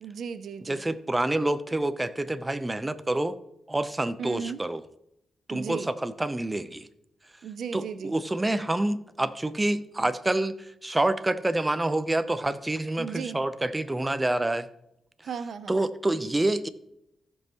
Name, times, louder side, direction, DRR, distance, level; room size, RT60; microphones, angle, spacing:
voice 1, 0.0-0.8 4.2-4.6 5.5-5.9 7.4-8.1 13.0-13.4 15.2-15.7, right 6 dB, 70° right, 13 dB, 0.5 m, -35 dB
voice 2, 0.6-3.4 3.7-4.8 5.5-6.9 7.7-14.7 15.7-16.7, right 1 dB, 15° right, 12 dB, 0.7 m, -27 dB
15.0 x 5.5 x 3.0 m, 0.81 s
cardioid pair, 60°, 0 cm